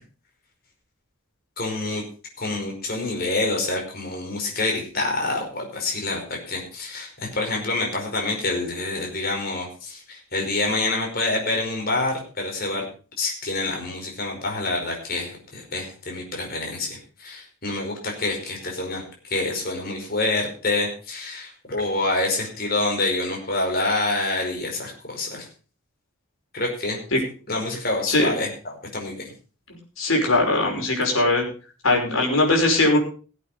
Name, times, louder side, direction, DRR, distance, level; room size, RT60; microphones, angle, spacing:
voice 1, 1.6-2.0 2.4-12.8 13.2-19.0 19.3-25.5 26.5-27.0 27.5-28.5 28.9-29.3, left 2 dB, 45° left, 1 dB, 5.1 m, -27 dB
voice 2, 30.0-31.4 31.8-33.0, left 2 dB, 70° left, 0 dB, 5.4 m, -20 dB
17.5 x 8.4 x 5.1 m, 0.38 s
head